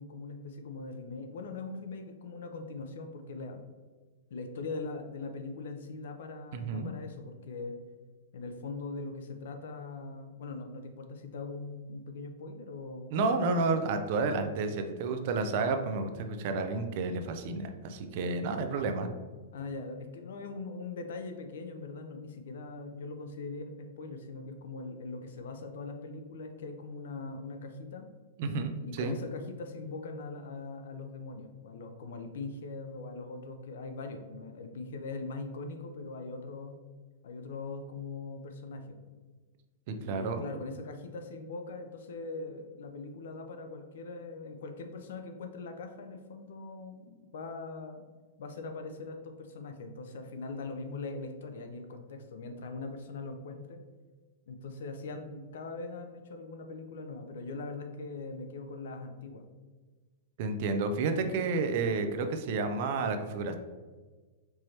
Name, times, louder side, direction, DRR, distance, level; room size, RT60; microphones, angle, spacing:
voice 1, 0.0-3.7 4.3-7.7 8.3-13.2 19.5-28.1 28.8-36.8 37.2-39.0 40.0-48.0 48.4-53.8 54.5-59.4 62.9-63.1, left 3 dB, 75° left, 5 dB, 0.6 m, -41 dB
voice 2, 6.5-6.9 13.1-19.1 28.4-29.1 39.9-40.4 60.4-63.6, right 3 dB, 50° right, 7 dB, 0.5 m, -31 dB
4.5 x 2.9 x 3.1 m, 1.3 s
supercardioid pair, 155°, 0 cm